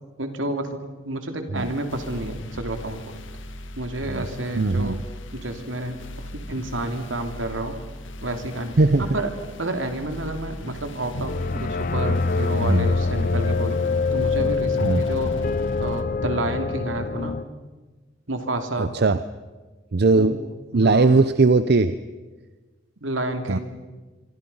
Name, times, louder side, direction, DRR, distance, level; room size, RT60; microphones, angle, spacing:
voice 1, 0.2-0.8 1.0-3.1 3.8-5.0 5.3-7.8 8.2-9.3 9.6-13.8 14.1-15.3 15.8-17.4 18.3-18.9 20.1-20.3 20.7-21.1 23.0-23.6, right 1 dB, 80° right, 6 dB, 2.9 m, -30 dB
sound 1, 1.5-16.0, left 1 dB, 75° left, 2.0 m, -38 dB
voice 2, 4.6-5.0 8.8-9.2 12.7-12.9 14.8-15.0 18.8-19.2 19.9-20.4 20.7-22.0 23.5-23.6, right 3 dB, 55° right, 13 dB, 0.7 m, -19 dB
sound 2, 11.1-17.4, left 4 dB, 45° left, 0.7 m, -24 dB
26.0 x 25.0 x 5.6 m, 1.3 s
head